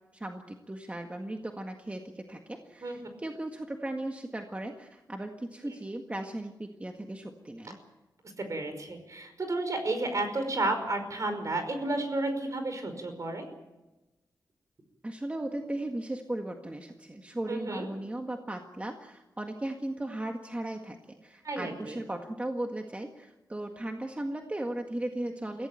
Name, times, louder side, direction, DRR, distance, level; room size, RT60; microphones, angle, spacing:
voice 1, 0.1-7.8 15.0-25.7, right 1 dB, 20° right, 3 dB, 1.7 m, -37 dB
voice 2, 8.4-13.4 17.5-17.9 21.4-22.0, right 2 dB, 50° right, 7 dB, 5.2 m, -32 dB
23.0 x 16.5 x 9.2 m, 1.0 s
wide cardioid pair, 85°, 7 cm